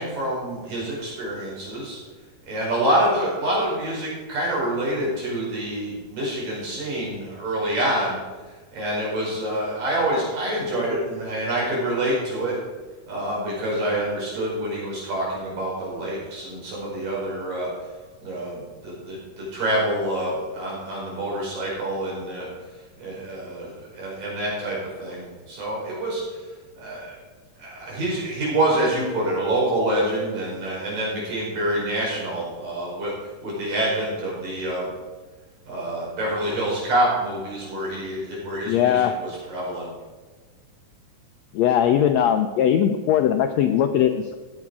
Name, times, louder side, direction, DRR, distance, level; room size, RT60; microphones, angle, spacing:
voice 1, 0.0-2.0 2.5-8.2 8.7-12.5 13.1-17.7 18.2-22.5 23.0-26.2 26.8-27.2 27.6-33.1 33.4-34.9 35.6-39.9, right 1 dB, 85° right, -5 dB, 6.5 m, -26 dB
voice 2, 38.7-39.2 41.5-44.3, left 9 dB, 85° left, 7 dB, 1.5 m, -20 dB
15.5 x 8.8 x 4.8 m, 1.4 s
omnidirectional pair, 3.8 m